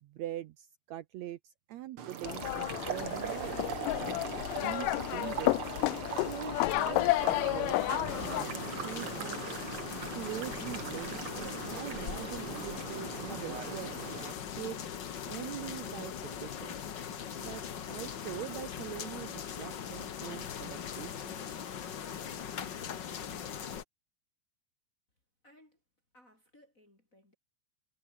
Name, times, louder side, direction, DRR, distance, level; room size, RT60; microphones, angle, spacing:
voice 1, 0.0-3.6 4.6-5.6 6.1-9.4 10.1-13.9 14.5-14.8 15.2-16.8 17.4-21.6, right 14 dB, 75° right, 1.7 m, -43 dB
sound 1, 2.0-14.3, right 8 dB, 45° right, 2.1 m, -41 dB
sound 2, 2.2-8.5, left 20 dB, 80° left, 2.1 m, -31 dB
sound 3, 8.1-23.8, left 8 dB, 55° left, 1.3 m, -40 dB
voice 2, 25.4-25.8 26.1-27.4, left 1 dB, 20° left, 5.2 m, -62 dB
omnidirectional pair, 3.9 m